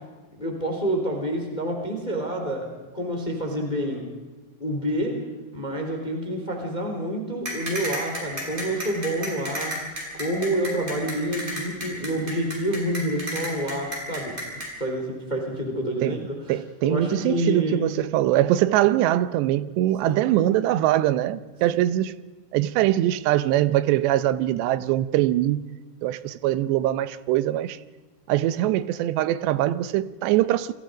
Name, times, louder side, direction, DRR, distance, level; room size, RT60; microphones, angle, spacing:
voice 1, 0.3-2.7 2.9-4.0 4.6-5.2 5.5-9.7 10.1-14.3 14.8-16.4 16.8-17.8 20.0-20.6, right 1 dB, 10° left, 3.0 m, -28 dB
sound 1, 7.4-14.7, equal, 10° right, 7.0 m, -31 dB
voice 2, 16.5-22.1 22.5-25.6 26.0-27.8 28.3-30.8, right 14 dB, 75° right, 2.8 m, -22 dB
29.0 x 23.0 x 5.1 m
omnidirectional pair, 5.3 m